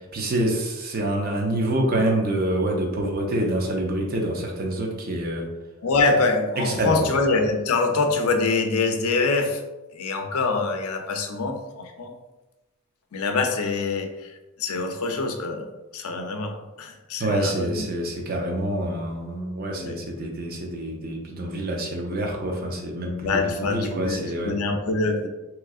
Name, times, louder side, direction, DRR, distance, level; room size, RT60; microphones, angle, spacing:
voice 1, 0.1-5.5 6.6-7.1 17.2-24.5, right 1 dB, 45° right, 1 dB, 0.6 m, -26 dB
voice 2, 5.8-9.6 9.9-12.1 13.1-15.7 15.9-17.9 19.7-20.0 23.2-25.3, left 3 dB, 90° left, 4 dB, 0.5 m, -25 dB
3.6 x 3.0 x 2.3 m, 1.0 s
head